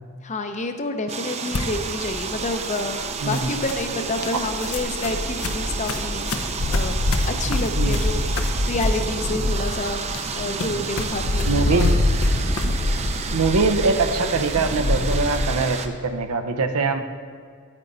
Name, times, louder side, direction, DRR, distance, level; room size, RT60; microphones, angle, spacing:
voice 1, 0.2-6.3 6.7-8.2 8.7-10.0 10.4-12.0, left 2 dB, 35° left, 6 dB, 0.7 m, -28 dB
sound 1, 1.1-15.9, right 5 dB, 30° right, 0.5 m, -31 dB
sound 2, 1.5-15.5, left 2 dB, 70° left, 0.7 m, -25 dB
voice 2, 3.2-3.5 7.8-8.0 11.5-12.0 13.3-17.0, right 3 dB, 80° right, 7 dB, 0.7 m, -22 dB
9.6 x 9.0 x 4.0 m, 2.1 s
head